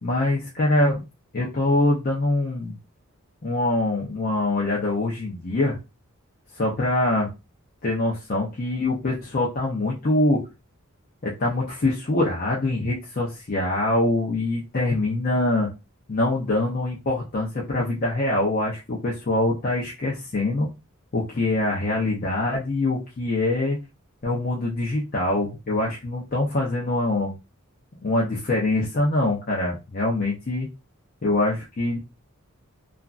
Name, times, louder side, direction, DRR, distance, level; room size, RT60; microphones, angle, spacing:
voice 1, 0.0-1.0 1.3-2.8 3.4-5.8 6.6-7.3 7.8-10.4 11.2-15.7 16.1-20.7 21.1-23.8 24.2-27.3 28.0-30.7 31.2-32.0, left 2 dB, 40° left, -4 dB, 0.6 m, -24 dB
3.0 x 2.4 x 2.4 m, 0.27 s
head